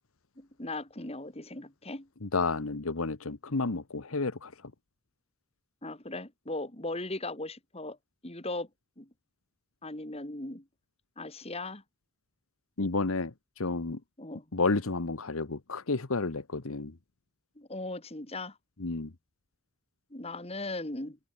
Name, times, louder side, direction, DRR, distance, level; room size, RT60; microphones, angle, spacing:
voice 1, 0.4-2.1 5.8-8.0 8.2-8.7 9.0-9.1 9.8-10.6 11.2-11.8 13.8-13.9 14.2-14.4 17.6-18.6 20.1-21.2, left 2 dB, 25° left, 2.6 m, -38 dB
voice 2, 2.2-4.5 12.8-14.0 14.5-16.9 18.8-19.1, left 3 dB, 75° left, 1.1 m, -31 dB
head